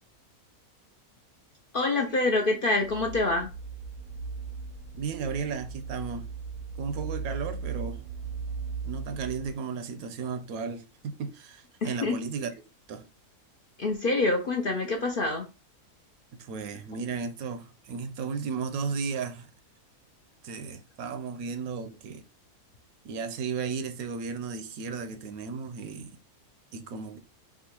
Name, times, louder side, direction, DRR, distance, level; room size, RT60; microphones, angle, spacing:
voice 1, 1.7-3.5 11.8-12.2 13.8-15.4, left 2 dB, 55° left, 0.6 m, -26 dB
sound 1, 2.8-9.5, right 5 dB, 50° right, 0.7 m, -37 dB
voice 2, 4.9-6.3 6.8-8.0 8.8-12.5 12.9-13.0 16.4-19.5 20.4-22.2 23.0-26.2 26.7-27.2, right 5 dB, 80° right, 1.1 m, -34 dB
3.7 x 2.4 x 4.3 m
omnidirectional pair, 1.5 m